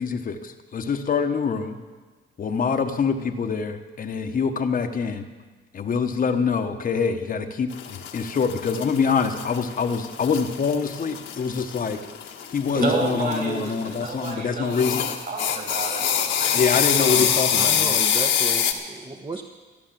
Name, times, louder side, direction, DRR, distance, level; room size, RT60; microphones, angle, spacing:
voice 1, 0.0-1.8 2.4-5.2 5.7-12.1 12.5-15.1 16.5-17.9, left 5 dB, 45° left, 5 dB, 1.1 m, -25 dB
sound 1, 7.7-14.3 14.7-18.7, left 8 dB, 75° left, 1.5 m, -26 dB
voice 2, 12.7-16.7, right 2 dB, 50° right, 0 dB, 5.6 m, -29 dB
voice 3, 16.9-19.4, right 3 dB, 25° right, 3 dB, 1.1 m, -33 dB
14.0 x 10.5 x 7.5 m, 1.3 s
cardioid pair, 90°, 20 cm